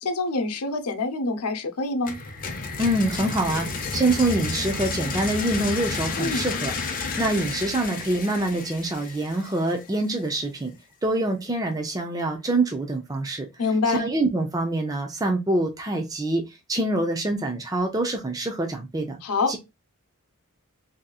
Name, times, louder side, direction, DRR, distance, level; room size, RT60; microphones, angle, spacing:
voice 1, 0.0-2.2 6.2-6.5 13.6-14.1 19.2-19.5, left 3 dB, 90° left, 0.7 m, -26 dB
sound 1, 2.1-9.8, left 4 dB, 40° left, 0.6 m, -31 dB
voice 2, 2.8-10.7 11.0-13.5 13.9-16.4 16.7-19.2 19.5-19.6, right 2 dB, 15° right, 0.5 m, -25 dB
3.8 x 2.8 x 2.3 m
head